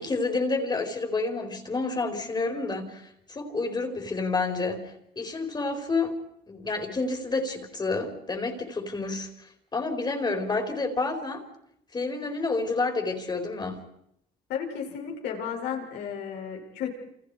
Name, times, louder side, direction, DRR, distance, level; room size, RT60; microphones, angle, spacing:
voice 1, 0.0-6.1 6.5-9.3 9.7-11.4 11.9-13.8, left 3 dB, 25° left, 4 dB, 4.5 m, -29 dB
voice 2, 14.5-16.9, left 8 dB, 85° left, 0 dB, 7.0 m, -33 dB
29.5 x 28.0 x 5.0 m, 0.75 s
cardioid pair, 110°, 17 cm